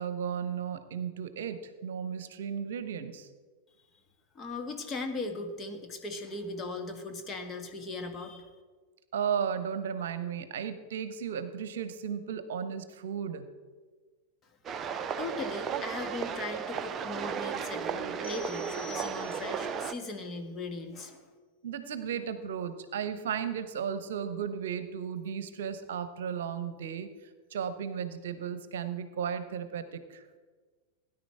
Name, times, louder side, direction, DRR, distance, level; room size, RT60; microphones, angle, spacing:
voice 1, 0.0-3.3 9.1-13.5 21.6-30.3, right 7 dB, 60° right, 11 dB, 1.0 m, -35 dB
voice 2, 4.4-8.5 14.8-21.2, left 2 dB, 20° left, 4 dB, 1.8 m, -38 dB
sound 1, 14.6-19.9, right 7 dB, 25° right, 0.7 m, -35 dB
sound 2, 18.2-19.8, left 5 dB, 70° left, 4.4 m, -47 dB
17.5 x 10.5 x 4.6 m, 1.4 s
figure-of-eight pair, 90°, 0 cm